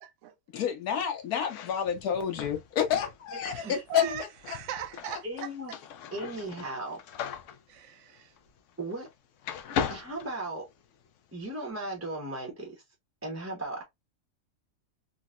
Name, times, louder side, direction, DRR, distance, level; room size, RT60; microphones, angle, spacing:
voice 1, 0.0-0.3 3.4-5.5 7.7-8.3, right 10 dB, 65° right, 0.8 m, -40 dB
voice 2, 0.5-4.1 4.5-4.6 5.0-5.2, left 9 dB, 85° left, 1.3 m, -29 dB
sound 1, 1.4-9.1 9.4-11.1, left 7 dB, 65° left, 0.8 m, -39 dB
voice 3, 3.6-4.2 5.2-5.7 6.1-7.0 8.8-9.1 9.9-10.7 11.3-12.8 13.2-13.8, right 2 dB, 15° right, 0.6 m, -36 dB
3.8 x 2.1 x 2.4 m
omnidirectional pair, 1.5 m